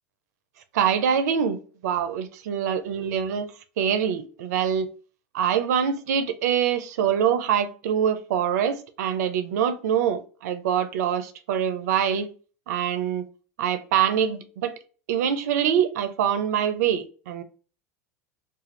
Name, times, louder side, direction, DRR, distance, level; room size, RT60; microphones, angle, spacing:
voice 1, 0.7-3.5 3.8-4.9 5.3-12.3 12.7-13.2 13.6-14.7 15.1-17.4, right 8 dB, 75° right, 0.5 m, -24 dB
2.5 x 2.3 x 3.0 m
hypercardioid pair, 90°, 9 cm